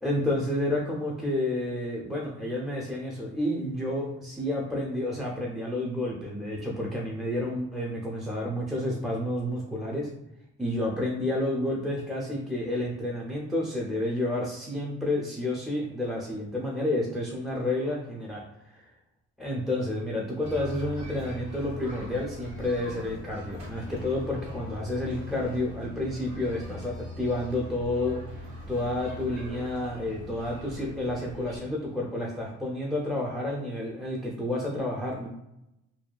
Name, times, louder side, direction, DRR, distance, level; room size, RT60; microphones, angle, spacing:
voice 1, 0.0-10.1 10.6-18.4 18.7-18.8 19.4-35.3, left 1 dB, ahead, -3 dB, 0.4 m, -30 dB
sound 1, 20.4-31.6, left 1 dB, 65° right, 1.1 m, -41 dB
2.6 x 2.3 x 2.2 m, 0.88 s
cardioid pair, 90°, 30 cm